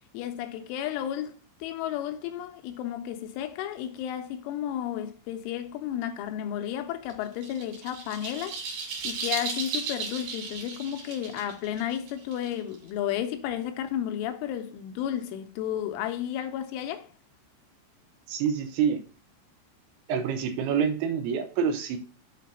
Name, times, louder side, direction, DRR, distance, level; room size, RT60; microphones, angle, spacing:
voice 1, 0.1-8.6 9.0-17.1, left 11 dB, 80° left, 3.2 m, -32 dB
sound 1, 7.1-12.9, right 4 dB, 55° right, 3.7 m, -35 dB
voice 2, 18.3-19.0 20.1-22.0, right 7 dB, 75° right, 3.0 m, -27 dB
8.4 x 4.2 x 5.5 m
omnidirectional pair, 5.7 m